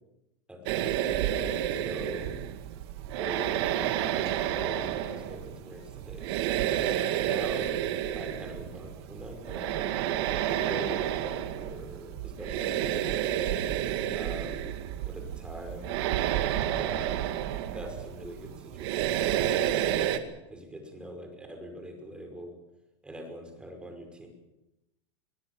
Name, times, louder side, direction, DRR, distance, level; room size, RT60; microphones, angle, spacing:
voice 1, 0.5-1.0 1.8-2.4 3.0-7.7 8.1-9.9 10.5-13.3 14.1-14.7 15.1-16.0 16.7-17.2 17.7-22.6 23.0-24.3, equal, 5° right, 4 dB, 5.4 m, -43 dB
sound 1, 0.7-20.2, right 11 dB, 60° right, 2.2 m, -30 dB
24.0 x 21.0 x 7.1 m, 0.94 s
supercardioid pair, 150°, 15 cm